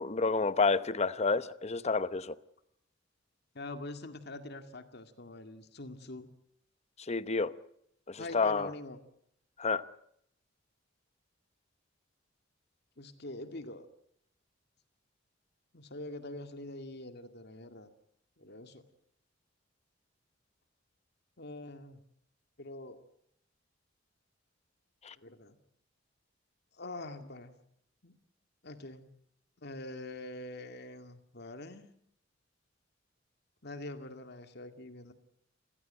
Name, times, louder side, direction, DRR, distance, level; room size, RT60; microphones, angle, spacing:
voice 1, 0.0-2.3 7.1-7.5 8.1-8.7 9.6-9.8 25.0-25.1, left 4 dB, 35° left, 0.9 m, -29 dB
voice 2, 3.5-6.3 8.2-9.0 13.0-13.9 15.7-17.9 18.4-18.8 21.4-22.0 22.6-23.0 25.2-25.6 26.8-27.5 28.0-28.1 28.6-29.1 29.6-31.9 33.6-35.1, left 2 dB, 60° left, 2.1 m, -44 dB
27.5 x 16.0 x 8.9 m
head